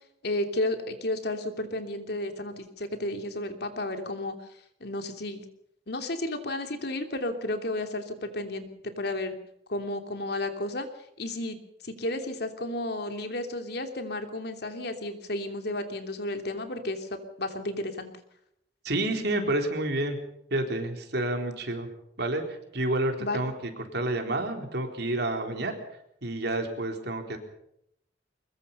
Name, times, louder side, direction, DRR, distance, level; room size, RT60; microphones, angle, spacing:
voice 1, 0.2-4.4 4.8-5.5 5.9-9.3 9.7-10.9 11.2-11.6 11.8-18.1 23.2-23.4, left 1 dB, 65° left, 6 dB, 3.0 m, -32 dB
voice 2, 18.8-20.2 20.5-21.9 22.2-23.5 23.9-25.7 26.2-27.4, right 1 dB, 65° right, 4 dB, 4.1 m, -29 dB
23.5 x 21.5 x 5.6 m, 0.77 s
head